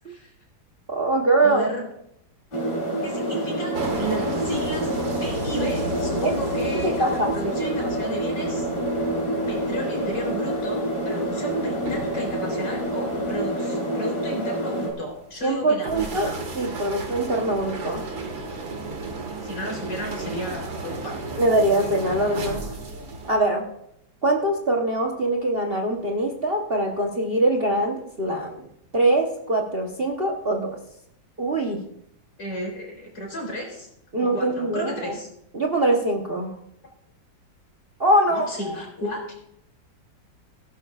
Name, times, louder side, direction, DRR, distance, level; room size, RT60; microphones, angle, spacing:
voice 1, 0.9-1.7 6.2-6.3 6.8-7.7 15.4-16.3 16.5-18.0 21.4-22.7 23.3-23.7 24.2-28.7 28.9-30.7 31.4-31.8 34.1-35.1 35.5-36.5 38.0-38.8, right 1 dB, 35° right, 2 dB, 1.1 m, -23 dB
voice 2, 1.4-1.8 3.0-4.9 5.2-8.7 9.5-16.3 19.4-21.2 32.4-33.9 34.2-35.3 38.3-39.3, equal, 65° left, -1 dB, 4.3 m, -33 dB
sound 1, 2.5-14.9, right 1 dB, 90° left, 3.9 m, -27 dB
sound 2, 3.7-23.4, right 2 dB, 85° right, 2.6 m, -35 dB
17.0 x 11.0 x 2.4 m, 0.76 s
omnidirectional pair, 2.1 m